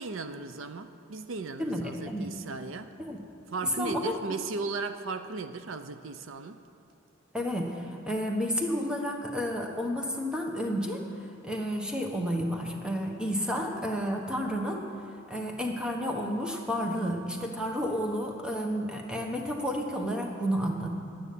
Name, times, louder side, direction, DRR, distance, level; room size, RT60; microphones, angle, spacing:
voice 1, 0.0-2.9 3.5-6.6, right 4 dB, 70° right, 9 dB, 0.6 m, -36 dB
voice 2, 1.6-2.3 3.0-3.2 3.8-4.1 7.3-11.0 11.4-14.9 15.3-20.9, equal, 5° right, 1 dB, 1.1 m, -31 dB
10.5 x 9.1 x 8.4 m, 2.7 s
head